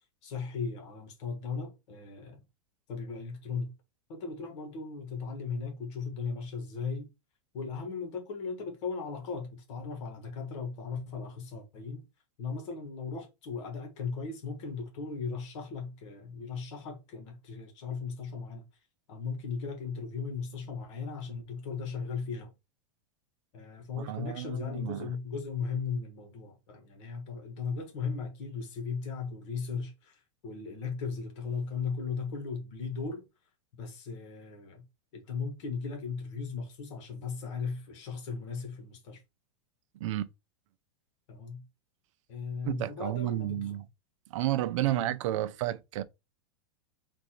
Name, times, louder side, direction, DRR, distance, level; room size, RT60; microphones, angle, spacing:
voice 1, 0.2-2.4 2.9-3.7 4.1-7.1 7.5-12.0 12.4-18.6 19.1-22.5 23.5-33.2 33.8-34.8 35.1-39.2 41.3-41.6 42.3-43.8 44.8-45.1, left 5 dB, 60° left, 1.6 m, -37 dB
voice 2, 24.1-25.1 40.0-40.3 42.6-43.8 44.3-46.0, right 14 dB, 65° right, 0.5 m, -31 dB
3.8 x 2.6 x 4.4 m
supercardioid pair, 150°, 17 cm